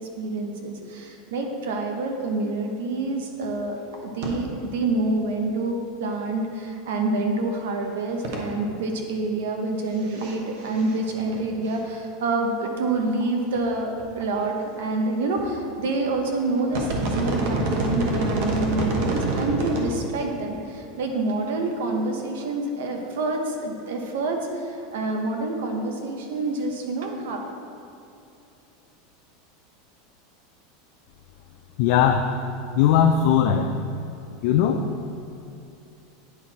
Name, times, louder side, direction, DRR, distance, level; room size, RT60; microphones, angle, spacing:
voice 1, 0.2-27.4, right 2 dB, 80° right, 3 dB, 1.0 m, -27 dB
sound 1, 3.4-3.5 3.8-4.0 4.2-4.3 4.6-4.7 6.9-7.0 8.2-8.4 10.0-10.3 10.6-11.4 11.7-11.8 12.6-12.7 13.2-13.3 13.5-13.6 14.0-14.4 15.4-15.6 16.1-16.3 16.6-19.9 20.2-20.3, right 2 dB, 55° right, 1.1 m, -27 dB
voice 2, 31.8-32.3 32.8-33.7 34.4-34.8, left 8 dB, 55° left, 3 dB, 0.4 m, -19 dB
9.3 x 4.4 x 4.2 m, 2.7 s
supercardioid pair, 165°, 0 cm